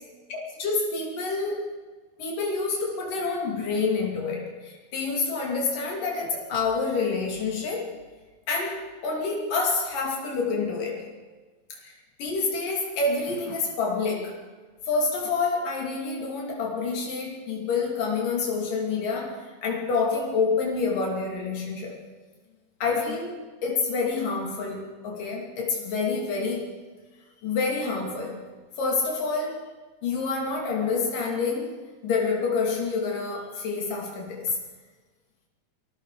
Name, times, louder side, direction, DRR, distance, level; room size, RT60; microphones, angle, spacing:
voice 1, 0.3-1.6 2.2-7.9 8.5-11.1 11.7-14.4 14.9-22.0 22.8-23.3 23.6-26.7 27.4-28.4 28.8-29.7 30.0-34.6, left 4 dB, 85° left, -1 dB, 4.5 m, -28 dB
29.0 x 20.0 x 5.0 m, 1.3 s
omnidirectional pair, 3.7 m